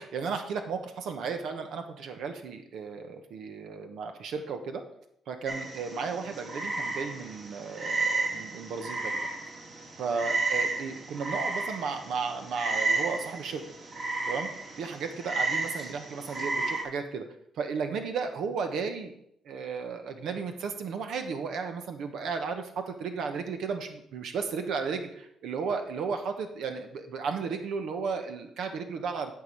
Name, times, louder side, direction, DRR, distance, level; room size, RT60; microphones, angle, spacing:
voice 1, 0.0-4.8 5.3-9.2 10.0-13.6 14.3-14.5 14.8-17.2 17.6-19.1 19.4-29.3, right 5 dB, 75° right, 6 dB, 1.0 m, -34 dB
Frog, 5.5-16.8, right 3 dB, 50° right, 2.3 m, -32 dB
12.0 x 4.8 x 5.3 m, 0.73 s
cardioid pair, 90°, 0 cm